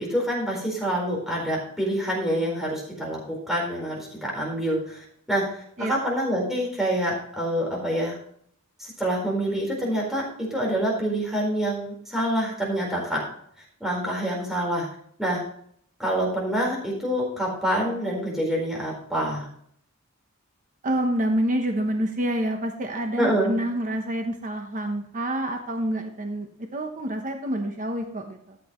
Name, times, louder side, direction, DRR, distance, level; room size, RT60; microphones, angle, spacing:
voice 1, 0.0-8.2 8.8-13.2 13.8-14.9 15.2-15.4 16.0-19.5 23.2-23.5, right 1 dB, ahead, -3 dB, 4.4 m, -26 dB
voice 2, 20.8-28.6, right 1 dB, 35° right, 4 dB, 1.0 m, -27 dB
14.0 x 7.8 x 3.1 m, 0.63 s
head